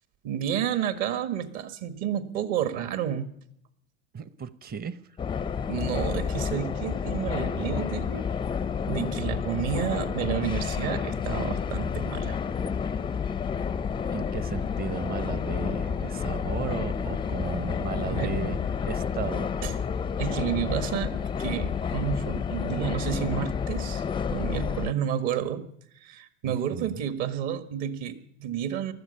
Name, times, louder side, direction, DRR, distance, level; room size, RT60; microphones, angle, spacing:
voice 1, 0.2-3.3 5.7-8.3 8.9-12.4 18.0-18.5 19.6-19.8 20.2-24.0 24.3-25.6 26.0-28.9, right 9 dB, 55° right, 9 dB, 1.8 m, -30 dB
voice 2, 4.1-5.0 14.1-18.6 18.8-19.5 26.4-27.0, right 7 dB, 25° right, 15 dB, 0.8 m, -35 dB
sound 1, 5.2-24.9, left 6 dB, 15° left, 0.5 m, -30 dB
20.0 x 13.0 x 5.6 m, 0.72 s
hypercardioid pair, 105°, 38 cm